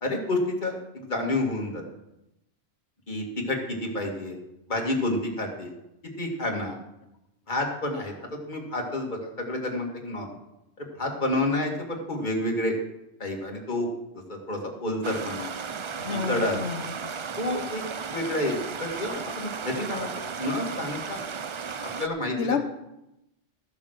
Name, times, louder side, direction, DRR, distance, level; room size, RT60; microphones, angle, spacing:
voice 1, 0.0-1.8 3.1-4.4 4.7-5.7 6.2-6.8 7.5-8.1 8.5-10.3 10.8-12.7 13.2-13.9 14.3-15.5 16.3-16.6 17.4-17.8 18.1-20.1 20.4-21.2 22.0-22.4, left 1 dB, 40° left, 0 dB, 2.2 m, -29 dB
Stream, 15.0-22.1, right 5 dB, 55° right, 0.3 m, -35 dB
voice 2, 16.0-17.0 22.4-22.6, left 5 dB, 65° left, 7 dB, 1.3 m, -29 dB
13.5 x 7.2 x 6.5 m, 0.89 s
omnidirectional pair, 1.2 m